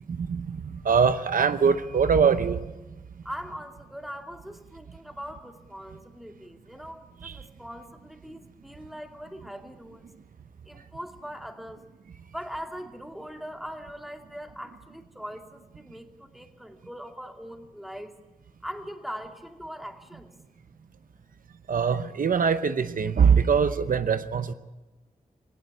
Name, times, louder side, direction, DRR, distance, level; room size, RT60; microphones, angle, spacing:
voice 1, 0.1-0.6 0.8-2.6 7.2-7.3 21.7-24.5, right 6 dB, 80° right, 11 dB, 0.8 m, -22 dB
voice 2, 3.2-10.0 10.6-11.9 12.3-18.2 18.6-20.3, equal, ahead, 3 dB, 2.4 m, -41 dB
18.0 x 17.0 x 8.4 m, 1.1 s
cardioid pair, 55°, 14 cm